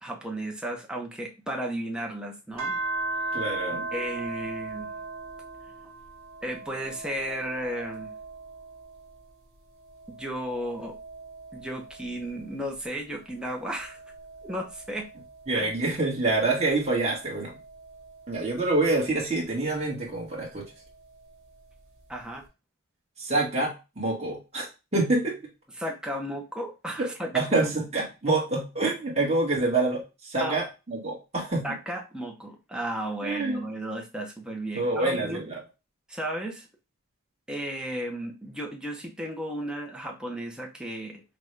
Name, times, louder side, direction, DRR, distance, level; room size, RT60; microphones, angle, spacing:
voice 1, 0.0-2.8 3.3-3.4 3.9-5.0 6.4-8.2 10.1-11.0 11.5-14.0 14.4-15.1 15.5-15.7 22.1-22.5 25.8-27.7 30.4-30.6 31.6-35.4 36.1-36.7 37.5-41.2, right 1 dB, 5° right, 1 dB, 0.6 m, -34 dB
sound 1, 2.6-9.3 9.7-12.6 13.2-16.0 16.8-19.2 20.6-21.6, right 2 dB, 65° right, 2.0 m, -39 dB
voice 2, 3.3-3.9 15.5-17.5 18.3-20.6 23.2-24.6 24.9-25.4 27.0-27.1 27.3-31.6 33.2-33.6 34.7-35.6, right 2 dB, 30° right, -3 dB, 1.5 m, -26 dB
5.8 x 2.3 x 3.2 m, 0.27 s
head